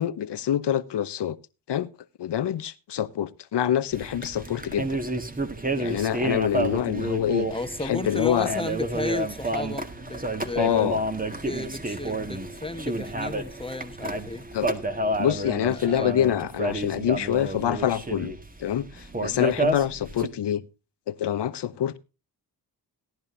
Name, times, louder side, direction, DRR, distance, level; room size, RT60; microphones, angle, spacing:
voice 1, 0.0-1.4 1.7-1.9 2.2-5.0 5.8-7.5 7.8-8.5 10.6-11.0 14.5-14.7 15.2-18.3 18.6-20.6 21.1-22.0, left 10 dB, 70° left, 1.0 m, -26 dB
sound 1, 3.9-20.3, right 2 dB, 20° right, 1.8 m, -30 dB
voice 2, 7.5-10.9 11.4-14.4 15.6-16.1 19.3-19.6, left 2 dB, 10° left, 1.2 m, -33 dB
17.5 x 10.5 x 2.7 m
cardioid pair, 65°, 42 cm